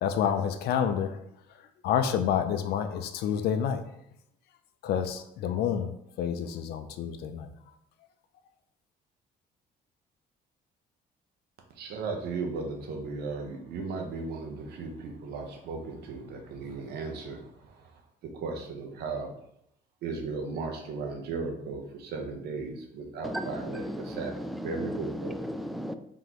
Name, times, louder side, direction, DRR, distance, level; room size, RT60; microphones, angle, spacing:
voice 1, 0.0-1.1 1.8-3.8 4.8-5.9 6.2-7.5, left 8 dB, 70° left, 8 dB, 0.5 m, -28 dB
voice 2, 11.8-17.4 18.4-19.3 20.0-24.3 24.6-25.4, right 4 dB, 70° right, 3 dB, 1.0 m, -36 dB
voice 3, 23.2-25.9, equal, ahead, 8 dB, 0.3 m, -35 dB
3.8 x 3.7 x 3.0 m, 0.75 s
cardioid pair, 110°, 17 cm